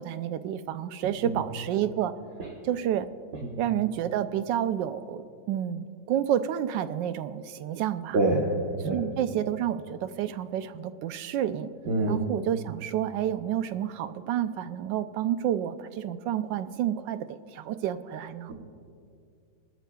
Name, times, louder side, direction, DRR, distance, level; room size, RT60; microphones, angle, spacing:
voice 1, 0.0-2.1 2.6-3.1 3.6-8.2 8.8-11.7 12.1-18.5, right 10 dB, 85° right, 11 dB, 1.3 m, -30 dB
voice 2, 8.1-8.5 8.8-9.0 11.9-12.2, right 2 dB, 55° right, -2 dB, 1.5 m, -24 dB
22.5 x 13.0 x 2.3 m, 2.4 s
omnidirectional pair, 1.9 m